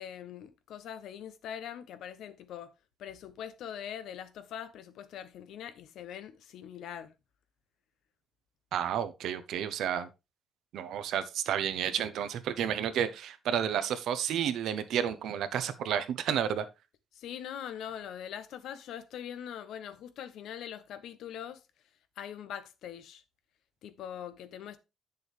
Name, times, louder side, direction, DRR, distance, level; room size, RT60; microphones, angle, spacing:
voice 1, 0.0-2.7 3.0-7.1 17.1-21.6 22.2-23.2 23.8-24.8, left 9 dB, 80° left, 0.9 m, -42 dB
voice 2, 8.7-10.1 10.7-16.7, right 9 dB, 80° right, 0.9 m, -31 dB
8.2 x 6.9 x 3.3 m
cardioid pair, 90°, 0 cm